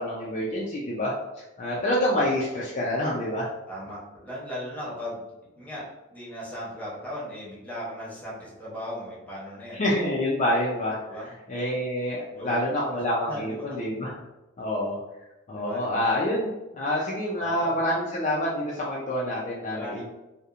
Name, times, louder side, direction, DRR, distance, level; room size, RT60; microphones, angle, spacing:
voice 1, 0.0-3.5 9.7-11.0 11.5-14.2 14.6-15.0 15.5-20.0, left 1 dB, 35° left, -5 dB, 0.3 m, -27 dB
voice 2, 3.7-5.2 5.6-5.8 6.1-9.8 11.1-11.3 12.3-12.6 13.3-13.8 15.5-16.0 17.4-17.7 19.7-20.0, equal, 10° left, -7 dB, 0.8 m, -37 dB
2.8 x 2.1 x 2.4 m, 0.99 s
head